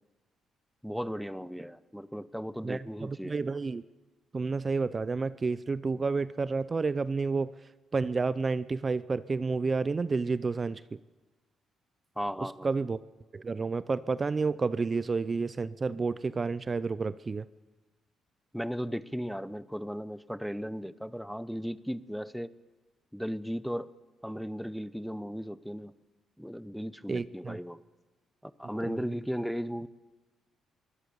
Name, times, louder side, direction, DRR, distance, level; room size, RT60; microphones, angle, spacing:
voice 1, 0.8-3.4 12.2-12.7 18.5-22.5 23.1-23.9 24.2-25.9 26.4-27.8 28.4-29.9, equal, ahead, 16 dB, 0.8 m, -36 dB
voice 2, 2.6-3.8 4.3-7.5 7.9-10.8 12.6-13.0 13.3-17.4 27.1-27.6 28.8-29.2, right 4 dB, 30° right, 16 dB, 0.6 m, -30 dB
22.5 x 18.0 x 7.0 m, 1.2 s
cardioid pair, 90°, 0 cm